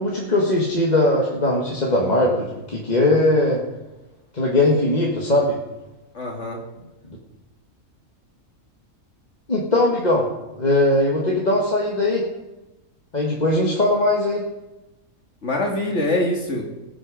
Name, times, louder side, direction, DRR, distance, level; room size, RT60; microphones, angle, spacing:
voice 1, 0.0-3.6 4.3-5.6 7.1-7.2 9.5-10.3 10.6-12.3 13.1-14.5, left 1 dB, 30° left, -3 dB, 1.7 m, -20 dB
voice 2, 6.1-6.6 15.4-16.6, left 1 dB, 55° left, 1 dB, 2.1 m, -24 dB
19.5 x 8.2 x 5.1 m, 1.1 s
omnidirectional pair, 1.5 m